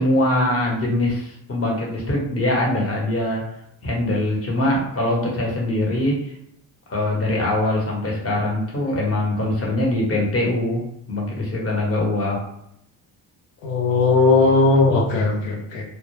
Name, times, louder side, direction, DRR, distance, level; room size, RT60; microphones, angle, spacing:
voice 1, 0.0-3.4 3.8-6.3 6.9-10.8 11.1-12.4, left 1 dB, 35° left, -2 dB, 1.0 m, -22 dB
voice 2, 13.6-15.8, left 3 dB, 85° left, -1 dB, 0.7 m, -18 dB
2.1 x 2.1 x 3.1 m, 0.76 s
cardioid pair, 80°, 43 cm